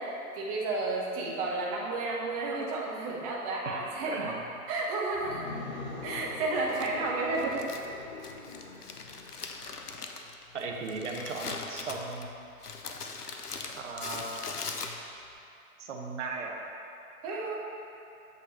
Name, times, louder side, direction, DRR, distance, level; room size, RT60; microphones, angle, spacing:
voice 1, 0.0-4.3 4.7-5.5 6.0-7.6 17.2-17.6, right 3 dB, 25° right, -3 dB, 0.9 m, -32 dB
voice 2, 4.0-4.4 10.5-12.3 13.8-14.4 15.8-16.6, right 4 dB, 50° right, 1 dB, 1.0 m, -37 dB
sound 1, 5.1-10.2, left 3 dB, 30° left, 0.6 m, -43 dB
Crumpling crinkling, 6.7-15.3, left 4 dB, 85° left, 0.8 m, -41 dB
7.6 x 5.1 x 4.1 m, 2.7 s
figure-of-eight pair, 125°, 45 cm